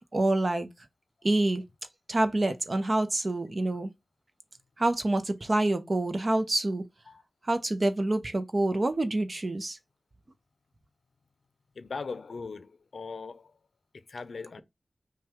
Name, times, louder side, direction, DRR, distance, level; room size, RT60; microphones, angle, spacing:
voice 1, 0.1-0.7 1.2-1.6 2.1-3.9 4.8-6.8 7.4-9.8, right 2 dB, 40° right, 0.7 m, -27 dB
voice 2, 11.7-13.5 13.9-14.6, left 4 dB, 80° left, 0.5 m, -39 dB
5.6 x 2.3 x 3.6 m
wide cardioid pair, 85°, 0 cm